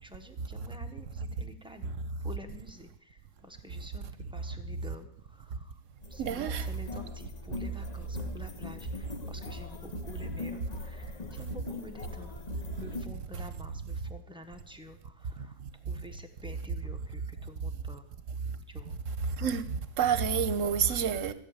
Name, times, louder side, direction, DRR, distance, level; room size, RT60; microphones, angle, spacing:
voice 1, 0.0-1.9 2.2-2.9 3.4-5.1 5.4-5.7 6.1-12.3 12.8-15.5 15.8-18.1 18.7-19.0, left 1 dB, 5° right, 1.0 m, -49 dB
sound 1, 6.0-13.1, left 3 dB, 35° left, 0.8 m, -41 dB
voice 2, 6.2-6.6 19.4-19.6 20.0-21.3, right 7 dB, 60° right, 1.2 m, -28 dB
15.0 x 6.7 x 8.9 m
omnidirectional pair, 1.6 m